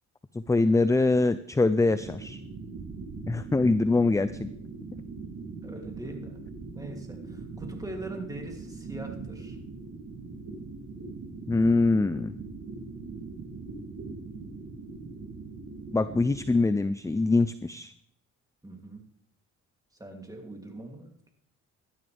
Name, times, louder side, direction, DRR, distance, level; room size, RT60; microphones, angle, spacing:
voice 1, 0.3-2.4 3.3-4.5 11.5-12.4 15.9-17.9, left 3 dB, 10° left, 13 dB, 0.5 m, -24 dB
sound 1, 1.9-16.5, right 4 dB, 65° right, 3.4 m, -41 dB
voice 2, 5.6-6.4 6.7-9.6 18.6-19.0 20.0-21.3, right 1 dB, 10° right, 2 dB, 3.0 m, -41 dB
17.0 x 12.0 x 3.5 m, 0.65 s
cardioid pair, 90°, 30 cm